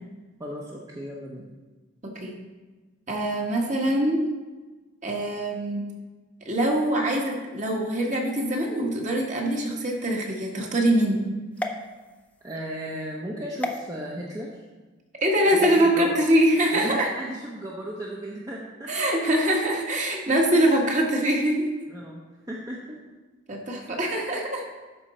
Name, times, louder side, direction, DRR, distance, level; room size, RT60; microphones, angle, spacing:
voice 1, 0.4-1.5 12.4-14.6 15.5-16.2 16.7-19.0 21.9-22.2 22.5-23.0 24.3-24.4, right 1 dB, 20° right, -3 dB, 0.8 m, -35 dB
voice 2, 2.0-2.4 3.1-4.2 5.0-5.8 6.4-11.2 15.2-17.1 18.9-21.7 23.5-24.6, right 1 dB, 40° right, 0 dB, 1.5 m, -23 dB
sound 1, 11.5-12.6 13.6-13.8 15.5-15.8, left 1 dB, 5° left, 0.5 m, -33 dB
12.5 x 5.2 x 4.3 m, 1.3 s
head